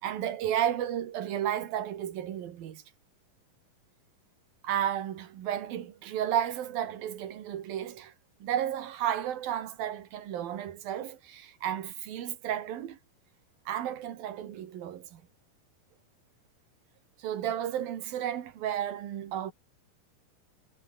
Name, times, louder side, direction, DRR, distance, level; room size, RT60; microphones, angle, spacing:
voice 1, 0.0-2.8 4.6-8.1 8.4-13.0 13.7-15.2 17.2-19.5, right 10 dB, 90° right, 3.7 m, -33 dB
omnidirectional pair, 4.0 m